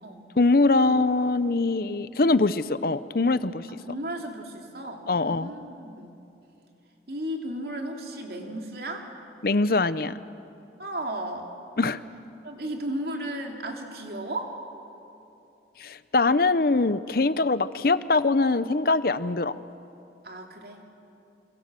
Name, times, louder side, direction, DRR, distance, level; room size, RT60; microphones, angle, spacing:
voice 1, 0.4-3.7 5.1-5.5 9.4-10.2 11.8-12.0 15.8-19.5, left 3 dB, 55° left, 15 dB, 0.7 m, -23 dB
voice 2, 3.8-6.2 7.1-9.1 10.8-11.5 12.4-14.5 20.2-20.8, right 1 dB, 55° right, 2 dB, 3.0 m, -34 dB
26.5 x 25.5 x 7.6 m, 2.8 s
head